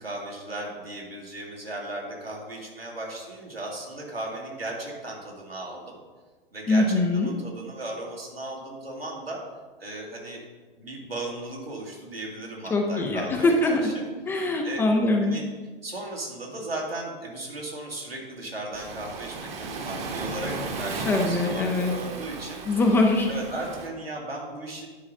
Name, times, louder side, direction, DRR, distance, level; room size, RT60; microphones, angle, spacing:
voice 1, 0.0-5.9 6.5-9.4 9.8-10.4 10.8-14.0 14.6-14.8 15.2-15.4 15.8-22.8 23.3-24.9, right 2 dB, 85° right, -3 dB, 2.1 m, -36 dB
voice 2, 6.7-7.3 12.7-13.8 14.3-15.3 21.1-21.9 22.7-23.3, left 2 dB, 10° left, 1 dB, 0.3 m, -22 dB
Waves surf, 18.7-23.9, right 3 dB, 20° right, 0.9 m, -35 dB
9.9 x 3.9 x 5.2 m, 1.3 s
figure-of-eight pair, 105°, 29 cm